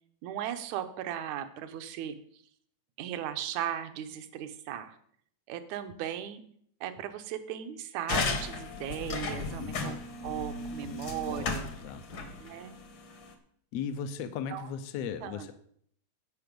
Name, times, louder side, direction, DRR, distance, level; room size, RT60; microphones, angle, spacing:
voice 1, 0.2-2.2 3.0-5.0 5.5-6.4 6.8-10.0 10.2-11.6 12.4-12.8 14.5-14.7 15.2-15.5, right 10 dB, 70° right, 9 dB, 2.1 m, -37 dB
sound 1, 8.1-13.3, left 3 dB, 50° left, 1.5 m, -35 dB
voice 2, 9.3-9.8 10.8-12.1 13.7-15.5, left 7 dB, 70° left, 9 dB, 1.7 m, -38 dB
16.0 x 5.7 x 5.2 m, 0.64 s
omnidirectional pair, 3.6 m